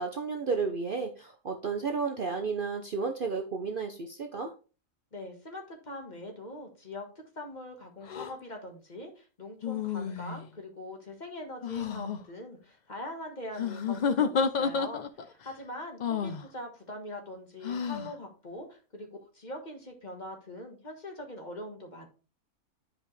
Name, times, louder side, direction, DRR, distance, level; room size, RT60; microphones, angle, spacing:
voice 1, 0.0-4.5, right 4 dB, 45° right, 5 dB, 0.8 m, -32 dB
voice 2, 5.1-7.1 7.3-22.1, left 1 dB, 30° left, 3 dB, 1.6 m, -42 dB
sound 1, 8.1-8.3 9.6-10.5 11.6-12.2 13.5-15.3 16.0-16.4 17.6-18.1, left 6 dB, 55° left, 0.5 m, -30 dB
10.5 x 5.0 x 3.3 m, 0.34 s
omnidirectional pair, 1.5 m